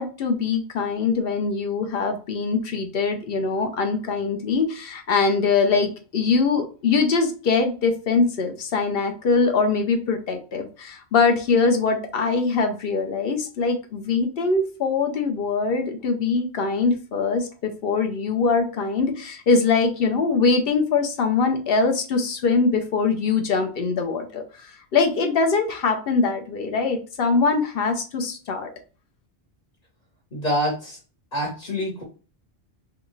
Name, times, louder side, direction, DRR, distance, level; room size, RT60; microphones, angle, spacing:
voice 1, 0.0-28.7, left 4 dB, 65° left, 5 dB, 0.8 m, -22 dB
voice 2, 30.3-31.0 31.3-32.0, equal, 40° left, -2 dB, 1.2 m, -26 dB
3.4 x 2.4 x 3.0 m, 0.37 s
omnidirectional pair, 1.1 m